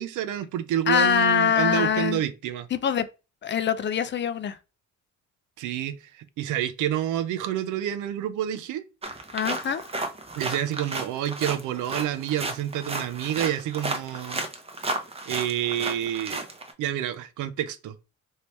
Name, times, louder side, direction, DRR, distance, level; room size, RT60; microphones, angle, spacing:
voice 1, 0.0-2.7 5.6-8.8 10.4-14.5 15.3-16.4 16.8-17.9, right 11 dB, 85° right, 0.5 m, -28 dB
voice 2, 0.9-2.2 2.7-3.1 3.4-4.6 9.3-9.8, left 8 dB, 40° left, 0.4 m, -23 dB
sound 1, 9.0-16.7, right 2 dB, 20° right, 0.7 m, -33 dB
3.1 x 2.8 x 3.1 m
cardioid pair, 90°, 30 cm